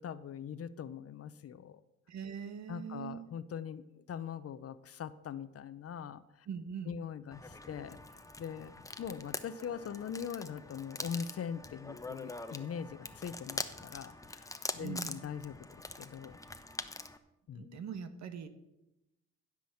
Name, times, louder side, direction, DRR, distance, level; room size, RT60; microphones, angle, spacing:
voice 1, 0.0-1.8 2.7-6.5 6.9-8.0 8.4-8.7 9.0-14.5 14.7-15.6 16.0-16.4 17.5-17.8, left 7 dB, 50° left, 14 dB, 0.8 m, -42 dB
voice 2, 2.1-3.3 6.5-6.9 14.8-15.2 17.5-18.5, right 7 dB, 65° right, 10 dB, 1.4 m, -42 dB
sound 1, 7.3-17.2, left 2 dB, 10° left, 0.9 m, -44 dB
15.5 x 6.2 x 7.2 m, 0.93 s
cardioid pair, 90°, 30 cm